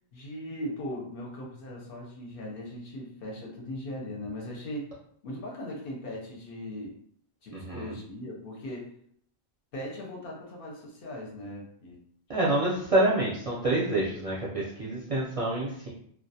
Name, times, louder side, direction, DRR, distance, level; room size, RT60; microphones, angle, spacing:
voice 1, 0.1-4.9 5.2-7.0 7.4-8.9 9.7-12.0, left 1 dB, 65° left, -1 dB, 0.7 m, -39 dB
voice 2, 12.3-15.9, right 2 dB, 50° right, -7 dB, 0.4 m, -27 dB
2.2 x 2.1 x 2.7 m, 0.65 s
omnidirectional pair, 1.1 m